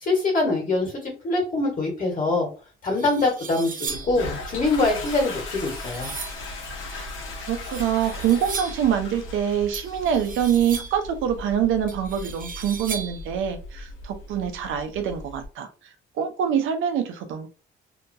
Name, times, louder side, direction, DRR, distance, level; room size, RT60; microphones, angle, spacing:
voice 1, 0.0-2.5 2.8-6.1, left 2 dB, 45° left, 1.4 m, -24 dB
sound 1, 2.3-2.4 2.8-4.2 5.1-6.5 7.5-8.9 9.7-11.1 11.9-13.3, right 5 dB, 45° right, 0.7 m, -37 dB
Toilet flush, 3.9-15.5, left 2 dB, 80° left, 1.0 m, -37 dB
voice 2, 7.5-15.7 16.2-17.5, right 9 dB, 80° right, 0.6 m, -25 dB
2.8 x 2.3 x 2.6 m
cardioid pair, 90°, 20 cm